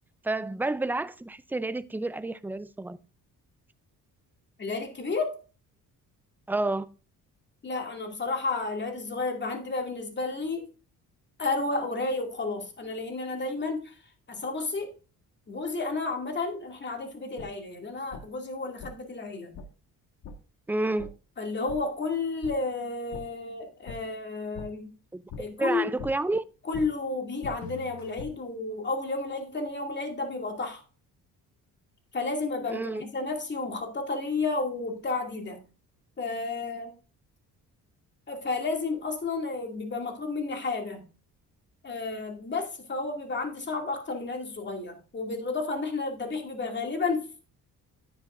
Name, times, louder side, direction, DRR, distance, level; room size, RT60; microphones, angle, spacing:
voice 1, 0.2-3.0 6.5-6.9 20.7-21.1 25.1-25.2 25.6-26.4 32.7-33.0, right 2 dB, 5° right, 0.4 m, -29 dB
voice 2, 4.6-5.4 7.6-10.7 11.4-14.0 14.3-14.9 15.5-19.5 21.4-24.9 25.4-25.9 26.7-30.8 32.1-35.6 36.2-36.9 38.3-41.0 41.8-47.4, left 3 dB, 30° left, 2.5 m, -32 dB
sound 1, 17.4-17.5 18.1-18.2 18.8-18.9 19.5-19.7 20.2-20.3 21.0-21.1 21.7-21.8 22.4-22.5 23.1-23.2 23.9-24.0 24.5-24.7 25.3-25.4 26.0-26.1 26.7-26.9 27.4-28.3, left 5 dB, 75° left, 1.8 m, -40 dB
10.0 x 9.6 x 2.6 m
cardioid pair, 115°, 35 cm